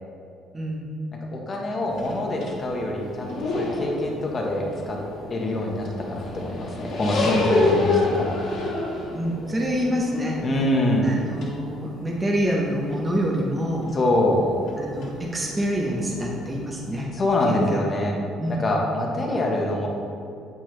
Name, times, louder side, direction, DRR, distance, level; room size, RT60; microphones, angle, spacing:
voice 1, 0.5-0.9 9.1-10.4 11.0-13.9 14.8-17.1 17.5-17.8 18.4-18.6, equal, 10° right, -2 dB, 0.6 m, -26 dB
voice 2, 1.1-5.0 5.3-8.4 10.4-11.1 13.9-14.4 17.1-18.1 18.5-19.9, left 1 dB, 25° left, 0 dB, 1.0 m, -25 dB
sound 1, 1.9-17.1, left 2 dB, 50° left, 1.4 m, -30 dB
8.3 x 5.9 x 3.2 m, 2.5 s
cardioid pair, 170°, 0 cm